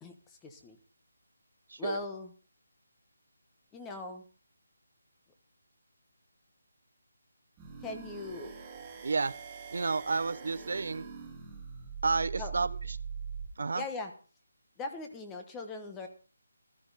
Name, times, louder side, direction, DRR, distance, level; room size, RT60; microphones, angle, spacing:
voice 1, 0.0-0.8 1.8-2.3 3.7-4.2 7.8-8.5 12.4-12.5 13.7-14.1 14.8-16.1, left 3 dB, 10° left, 5 dB, 1.1 m, -40 dB
sound 1, 7.6-13.5, right 6 dB, 10° right, 2.1 m, -42 dB
voice 2, 9.0-9.3 9.7-11.0 12.0-13.0 13.6-13.8, right 4 dB, 60° right, 14 dB, 0.7 m, -31 dB
14.0 x 13.5 x 4.1 m, 0.38 s
hypercardioid pair, 170°, 0 cm